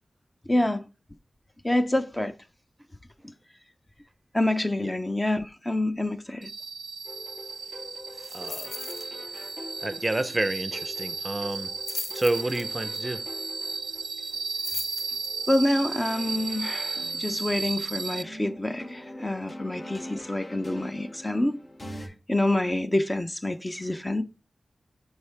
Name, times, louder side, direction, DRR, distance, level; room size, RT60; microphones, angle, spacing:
voice 1, 0.5-0.9 1.6-2.3 4.3-6.5 15.5-21.6 22.3-24.2, left 1 dB, 20° left, 0.6 m, -27 dB
sound 1, 6.4-18.2, right 4 dB, 85° right, 0.3 m, -35 dB
sound 2, 7.0-22.1, left 1 dB, 50° left, 5.0 m, -44 dB
sound 3, 8.2-9.1 9.4-9.6 9.9-10.0 11.5-13.0 14.3-15.6 16.1-16.2, left 4 dB, 85° left, 0.6 m, -38 dB
voice 2, 8.2-8.7 9.8-11.7 12.1-13.2, right 2 dB, 20° right, 0.6 m, -29 dB
12.0 x 4.5 x 3.4 m
wide cardioid pair, 105°, 0 cm